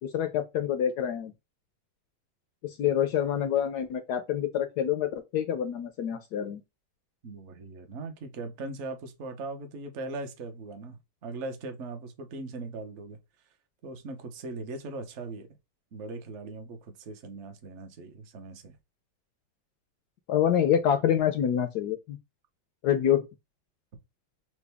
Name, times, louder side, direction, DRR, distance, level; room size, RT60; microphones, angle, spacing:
voice 1, 0.0-1.3 2.6-6.6 20.3-22.2 22.8-23.2, left 9 dB, 80° left, 0.9 m, -26 dB
voice 2, 7.2-13.2 13.8-15.5 15.9-18.8, right 3 dB, 60° right, 0.7 m, -39 dB
5.9 x 2.1 x 3.4 m
omnidirectional pair, 2.2 m